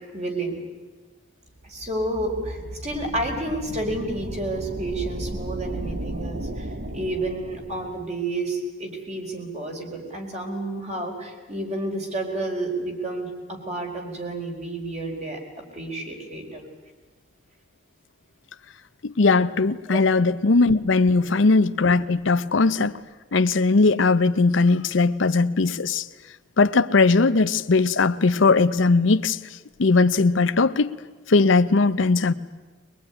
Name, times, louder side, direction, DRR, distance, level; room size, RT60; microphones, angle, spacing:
voice 1, 0.1-0.6 1.6-6.7 6.9-15.4 15.7-16.6 19.9-20.0 21.1-21.3, right 2 dB, 35° right, 1 dB, 4.7 m, -30 dB
sound 1, 1.6-8.1, right 1 dB, 55° right, 1.4 m, -35 dB
voice 2, 19.0-23.0 23.3-26.1 26.6-29.4 29.8-30.9 31.3-32.3, left 3 dB, 70° left, 11 dB, 0.7 m, -19 dB
22.5 x 21.0 x 9.9 m, 1.3 s
head